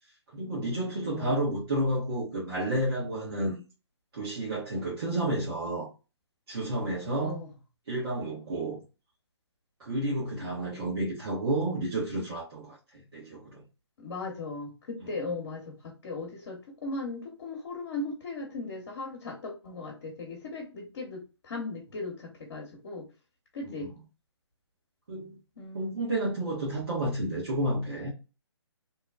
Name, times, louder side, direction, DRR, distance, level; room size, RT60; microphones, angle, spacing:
voice 1, 0.3-3.6 4.1-5.9 6.5-7.4 7.9-8.8 9.8-13.6 15.0-15.1 23.6-23.9 25.1-25.4 25.7-28.1, right 1 dB, 55° right, 1.2 m, -31 dB
voice 2, 1.1-1.5 7.2-7.5 14.0-23.1 23.5-23.9 25.6-26.0, left 3 dB, 50° left, 1.0 m, -38 dB
2.9 x 2.2 x 2.3 m
figure-of-eight pair, 140°, 15 cm